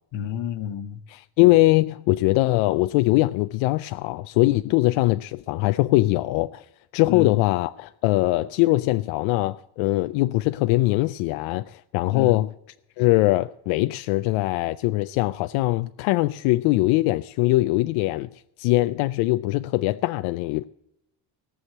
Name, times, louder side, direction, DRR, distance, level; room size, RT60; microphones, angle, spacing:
voice 1, 0.1-1.0 7.1-7.4 12.1-12.4, left 9 dB, 70° left, 1.1 m, -30 dB
voice 2, 1.1-6.7 6.9-12.5 13.0-18.3 18.6-20.6, left 19 dB, 90° left, 0.5 m, -22 dB
17.5 x 6.4 x 8.0 m
cardioid pair, 115°, 46 cm